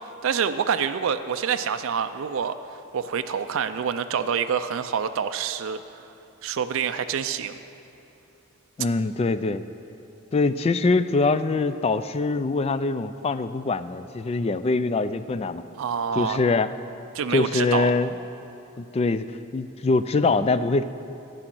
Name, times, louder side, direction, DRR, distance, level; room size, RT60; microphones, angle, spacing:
voice 1, 0.2-2.5 2.9-5.8 6.4-7.6 15.8-16.4 17.1-17.9, right 7 dB, 70° right, 9 dB, 0.4 m, -26 dB
voice 2, 8.8-9.6 10.3-15.6 16.2-16.7 17.3-18.1 18.8-20.8, left 3 dB, 30° left, 13 dB, 0.3 m, -23 dB
11.5 x 9.1 x 6.1 m, 2.8 s
head